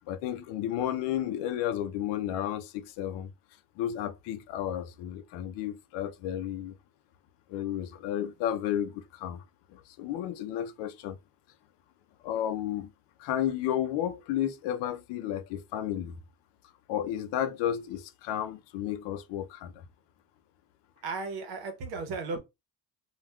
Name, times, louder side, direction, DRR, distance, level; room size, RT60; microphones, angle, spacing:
voice 1, 0.1-3.3 3.8-6.8 7.5-9.4 9.7-11.2 12.2-12.9 13.2-16.2 16.9-19.7, left 11 dB, 85° left, 0.5 m, -32 dB
voice 2, 21.0-22.4, right 4 dB, 65° right, 0.9 m, -35 dB
3.4 x 2.3 x 2.2 m
cardioid pair, 155°, 41 cm